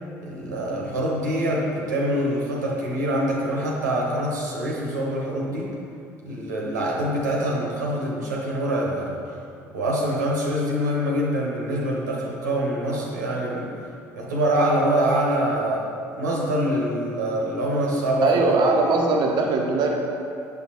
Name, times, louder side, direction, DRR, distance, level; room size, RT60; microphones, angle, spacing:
voice 1, 0.2-5.7 6.2-9.2 9.7-13.7 14.2-18.3, right 1 dB, 90° right, -3 dB, 0.9 m, -25 dB
voice 2, 18.2-20.0, right 3 dB, 50° right, 0 dB, 0.6 m, -20 dB
6.0 x 5.6 x 2.9 m, 2.5 s
hypercardioid pair, 60°, 9 cm